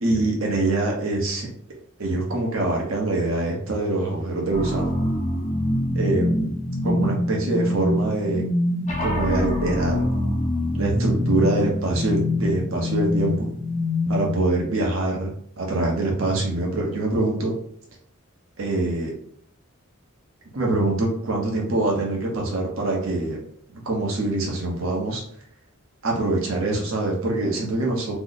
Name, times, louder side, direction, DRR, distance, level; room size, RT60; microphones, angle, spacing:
voice 1, 0.0-1.5 2.0-5.0 5.9-6.5 6.8-8.4 9.0-10.1 10.7-13.5 14.1-17.6 18.6-19.1 20.5-23.4 23.7-25.2 26.0-28.2, right 2 dB, 70° right, -2 dB, 0.9 m, -24 dB
sound 1, 4.5-14.5, left 1 dB, 35° left, 0.6 m, -25 dB
3.1 x 2.0 x 3.9 m, 0.64 s
head